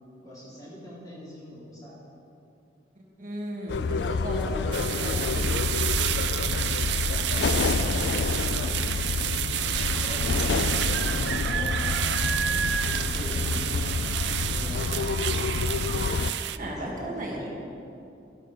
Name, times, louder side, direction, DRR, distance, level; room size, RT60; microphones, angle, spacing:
voice 1, 0.2-2.0 6.4-9.2 9.9-15.6 16.8-17.1 17.4-17.5, equal, 20° left, -7 dB, 4.1 m, -41 dB
voice 2, 3.2-5.6 16.5-17.4, right 1 dB, 45° right, -2 dB, 1.8 m, -35 dB
sound 1, 3.7-16.3, left 4 dB, 65° left, 0.4 m, -28 dB
sound 2, 4.7-16.6, right 11 dB, 65° right, 0.5 m, -30 dB
11.5 x 11.5 x 6.6 m, 2.6 s
head